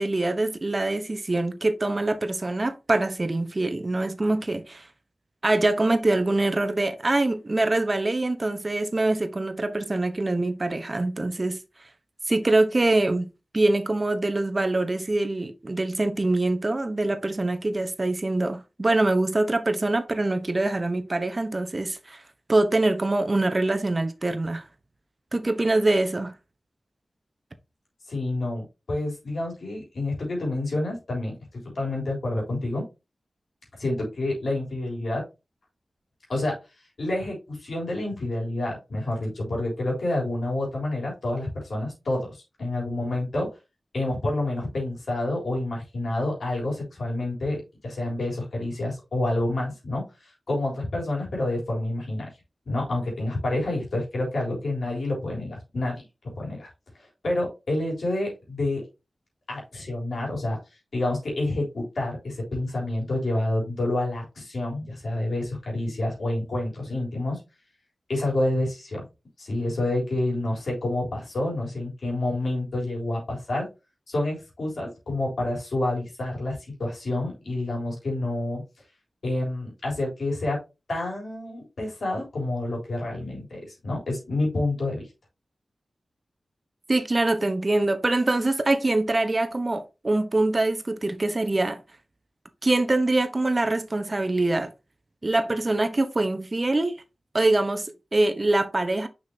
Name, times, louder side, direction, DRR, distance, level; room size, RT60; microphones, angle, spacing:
voice 1, 0.0-4.8 5.4-11.6 12.3-22.2 22.5-24.6 25.3-26.3 86.9-91.8 92.6-94.7 95.2-97.0 97.3-99.1, right 2 dB, 45° right, 1.0 m, -24 dB
voice 2, 28.1-32.8 33.7-35.2 36.3-36.6 37.0-43.5 43.9-50.0 50.5-52.2 52.7-56.0 56.3-56.7 57.2-58.8 59.5-60.6 60.9-67.4 68.1-69.1 69.4-73.7 74.1-78.6 79.2-80.6 80.9-85.1, left 2 dB, 80° left, 3.6 m, -28 dB
6.3 x 5.8 x 2.8 m
cardioid pair, 40°, 0 cm